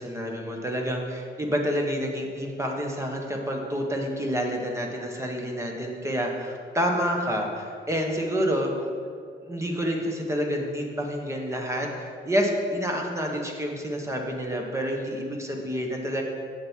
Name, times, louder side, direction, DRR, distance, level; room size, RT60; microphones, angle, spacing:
voice 1, 0.0-8.7 9.4-16.2, equal, 15° right, 1 dB, 1.4 m, -28 dB
7.4 x 7.3 x 4.7 m, 2.1 s
cardioid pair, 90°, 20 cm